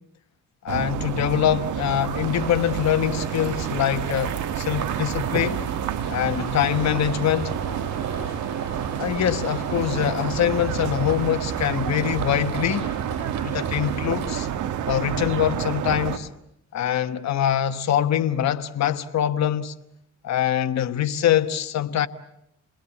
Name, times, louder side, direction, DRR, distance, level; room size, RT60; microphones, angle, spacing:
voice 1, 0.6-5.6 6.1-7.5 9.0-12.9 13.4-14.5 14.8-16.3 16.7-19.7 20.2-22.1, left 10 dB, 65° left, 1.3 m, -24 dB
sound 1, 0.7-16.2, right 9 dB, 80° right, 1.8 m, -29 dB
sound 2, 2.1-14.4, right 5 dB, 60° right, 7.8 m, -36 dB
28.0 x 21.0 x 8.4 m
cardioid pair, 90°, 30 cm